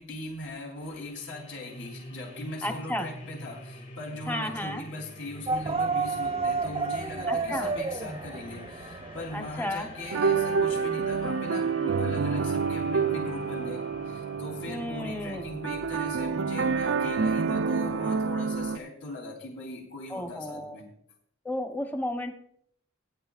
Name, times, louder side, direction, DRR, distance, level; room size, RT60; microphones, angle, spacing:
voice 1, 0.0-20.9, left 1 dB, 65° left, -2 dB, 3.4 m, -40 dB
sound 1, 0.8-18.7, left 1 dB, 45° left, 4.6 m, -47 dB
voice 2, 2.6-3.1 4.3-4.8 7.3-7.7 9.3-9.9 14.7-15.5 20.1-20.8 21.4-22.3, left 1 dB, 10° left, 5 dB, 0.9 m, -33 dB
sound 2, 5.5-11.3, right 4 dB, 30° right, 0.5 m, -32 dB
sound 3, 10.1-18.8, right 5 dB, 80° right, 0.5 m, -28 dB
18.0 x 11.0 x 2.5 m, 0.65 s
head